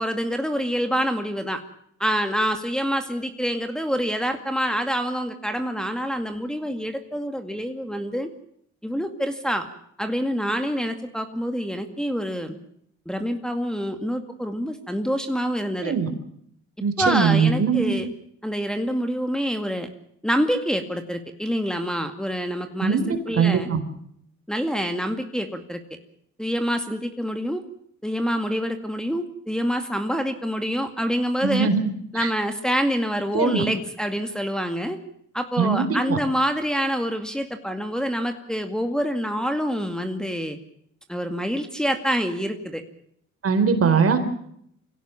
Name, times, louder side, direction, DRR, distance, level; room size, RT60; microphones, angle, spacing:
voice 1, 0.0-1.6 2.0-8.3 8.8-9.7 10.0-12.6 13.1-15.9 17.0-18.1 18.4-19.9 20.2-23.0 23.3-23.7 24.5-25.8 26.4-27.6 28.0-31.7 32.1-35.0 35.3-40.6 41.1-42.8, equal, ahead, 5 dB, 2.1 m, -26 dB
voice 2, 16.8-17.9 22.8-23.8 31.4-31.8 32.1-32.3 33.3-33.6 35.6-36.2 43.4-44.2, right 6 dB, 50° right, 8 dB, 4.2 m, -21 dB
24.5 x 17.0 x 7.3 m, 0.69 s
cardioid pair, 90°, 30 cm